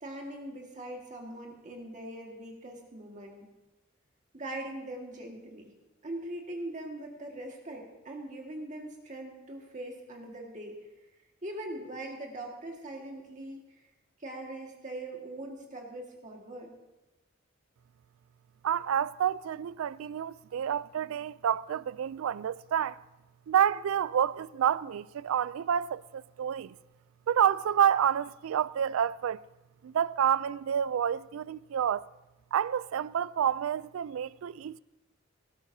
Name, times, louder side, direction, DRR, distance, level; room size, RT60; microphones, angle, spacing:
voice 1, 0.0-3.5 4.3-5.7 6.0-10.8 11.4-13.9 14.2-16.7, right 1 dB, 40° right, 1.8 m, -41 dB
voice 2, 18.6-23.0 23.5-26.7 27.3-29.4 29.8-32.1 32.5-34.8, right 9 dB, 85° right, 0.3 m, -29 dB
17.5 x 13.0 x 2.7 m
head